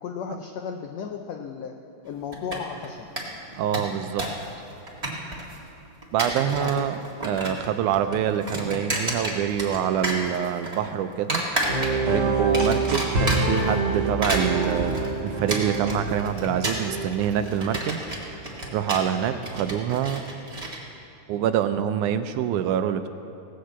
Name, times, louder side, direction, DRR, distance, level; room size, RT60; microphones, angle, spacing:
voice 1, 0.0-1.7 2.0-3.1 6.5-6.9, left 7 dB, 80° left, 3 dB, 1.5 m, -34 dB
sound 1, 2.3-2.9 3.2-3.3 3.5-4.4 4.7-5.5 6.0-6.8 7.0-7.7 7.9-9.8 10.0-10.8 11.3-12.1 12.5-13.6 14.0-20.8, right 1 dB, 15° right, 1.4 m, -30 dB
voice 2, 3.6-4.3 6.1-7.0 7.2-11.4 12.1-18.0 18.7-20.2 21.3-23.1, right 9 dB, 80° right, 9 dB, 1.9 m, -26 dB
sound 2, 11.7-18.1, right 3 dB, 40° right, 2.0 m, -26 dB
17.5 x 6.5 x 8.0 m, 2.6 s
omnidirectional pair, 3.7 m